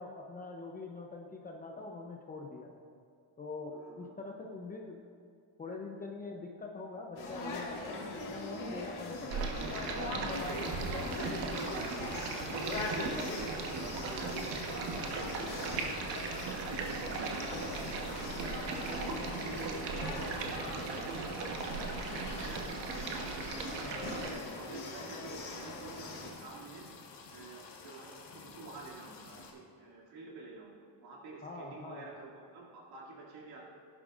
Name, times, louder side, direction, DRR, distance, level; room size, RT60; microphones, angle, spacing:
voice 1, 0.0-2.7 3.4-5.0 5.6-9.4 10.0-11.3 19.5-19.7 23.8-24.2 31.4-32.1, left 3 dB, 20° left, 0 dB, 0.7 m, -44 dB
voice 2, 3.7-4.1 10.3-14.3 14.6-23.3 24.2-33.6, right 3 dB, 60° right, -4 dB, 2.7 m, -48 dB
sound 1, 7.2-26.3, left 3 dB, 45° left, 2.0 m, -42 dB
Stream, 9.3-24.3, right 4 dB, 80° right, 1.4 m, -38 dB
sound 2, 10.3-29.5, left 4 dB, 70° left, 1.7 m, -52 dB
17.0 x 11.0 x 2.6 m, 2.3 s
cardioid pair, 165°, 42 cm